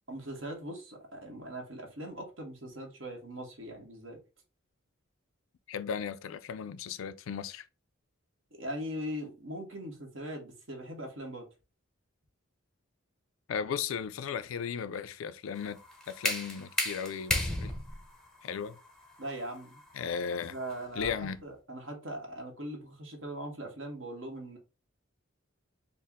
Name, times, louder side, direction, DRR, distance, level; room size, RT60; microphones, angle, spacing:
voice 1, 0.1-4.2 8.5-11.5 19.2-19.8 20.5-21.1 21.4-24.6, right 1 dB, 65° right, 1.2 m, -40 dB
voice 2, 5.7-7.7 13.5-15.8 16.1-17.7 18.4-18.8 19.9-20.6 21.0-21.4, left 7 dB, 75° left, 0.4 m, -36 dB
sound 1, 15.6-21.3, left 1 dB, 5° left, 0.6 m, -35 dB
4.3 x 2.1 x 3.5 m
head